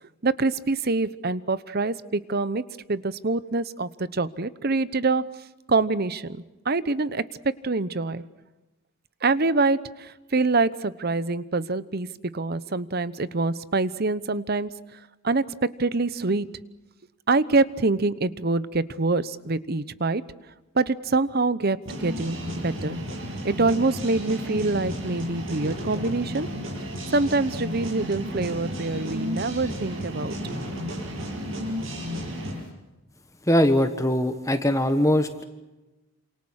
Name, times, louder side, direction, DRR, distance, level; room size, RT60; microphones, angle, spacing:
voice 1, 0.2-2.6 2.9-5.2 5.7-8.2 9.2-12.1 12.3-15.4 15.8-16.5 17.3-20.2 20.7-22.4 22.6-23.0 23.4-26.5 27.1-30.4, right 3 dB, 50° right, 16 dB, 1.0 m, -25 dB
sound 1, 21.9-32.6, equal, 70° right, 7.5 m, -33 dB
voice 2, 33.5-35.3, left 1 dB, 15° left, 8 dB, 1.4 m, -21 dB
28.5 x 27.5 x 6.5 m, 1.1 s
head